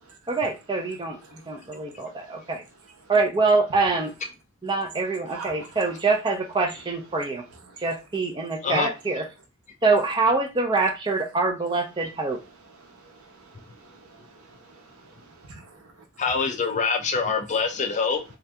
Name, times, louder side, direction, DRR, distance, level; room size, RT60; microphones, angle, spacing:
voice 1, 0.3-2.6 3.1-4.1 4.6-7.4 7.8-9.2 9.8-12.4, right 3 dB, 20° right, 0.5 m, -25 dB
voice 2, 1.2-2.5 3.0-3.1 4.9-5.8 7.5-7.8 8.4-8.5 12.7-16.0, right 4 dB, 75° right, 0.8 m, -47 dB
voice 3, 16.2-18.2, left 5 dB, 30° left, 0.4 m, -25 dB
2.8 x 2.5 x 3.3 m
head